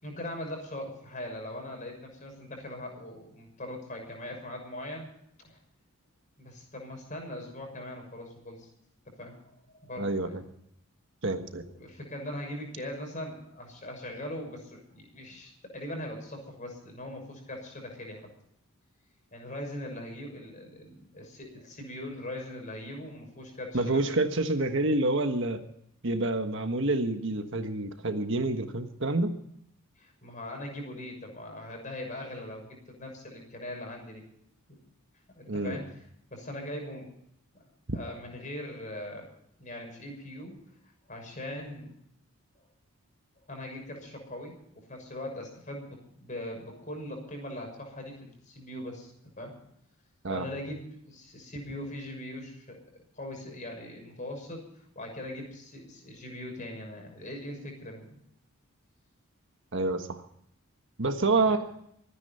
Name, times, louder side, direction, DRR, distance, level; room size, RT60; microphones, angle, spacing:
voice 1, 0.0-5.1 5.4-5.6 6.4-8.7 9.2-10.3 11.6-18.3 19.3-24.0 30.0-34.2 35.3-35.9 36.3-37.1 37.5-37.6 37.9-39.3 39.6-40.6 41.1-41.9 43.5-49.5 50.3-52.8 53.1-58.1 61.4-61.6, left 1 dB, 35° left, 3 dB, 6.3 m, -40 dB
voice 2, 10.0-10.4 11.2-11.6 23.7-25.6 26.0-29.4 35.5-35.8 50.2-50.4 59.7-60.2 61.0-61.6, right 2 dB, 55° right, 7 dB, 1.4 m, -28 dB
25.0 x 10.0 x 5.6 m, 0.71 s
head